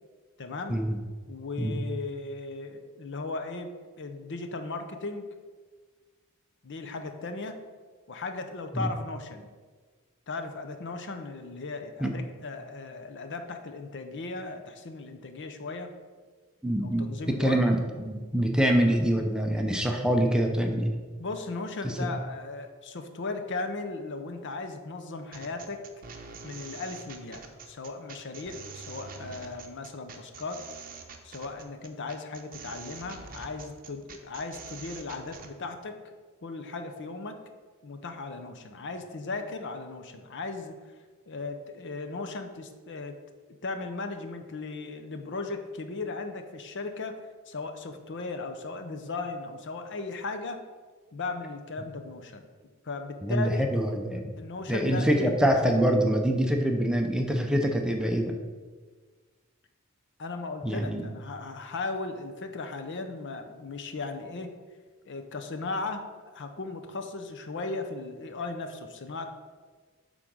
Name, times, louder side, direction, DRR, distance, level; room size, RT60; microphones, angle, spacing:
voice 1, 0.4-0.8 1.3-3.7 4.0-5.3 6.6-7.6 8.1-9.5 10.3-15.9 16.8-17.6 21.2-25.9 26.4-30.6 31.2-36.0 36.4-37.4 37.8-40.8 41.3-43.1 43.6-47.2 47.5-50.6 51.1-52.5 52.8-53.7 54.4-55.4 60.2-64.5 65.0-69.2, left 3 dB, 55° left, 7 dB, 0.7 m, -37 dB
voice 2, 16.6-21.0 21.8-22.2 53.2-54.3 54.7-58.4 60.6-61.0, equal, 5° right, 3 dB, 0.6 m, -25 dB
sound 1, 25.3-35.5, right 5 dB, 40° right, 0.8 m, -45 dB
8.5 x 3.8 x 6.1 m, 1.4 s
head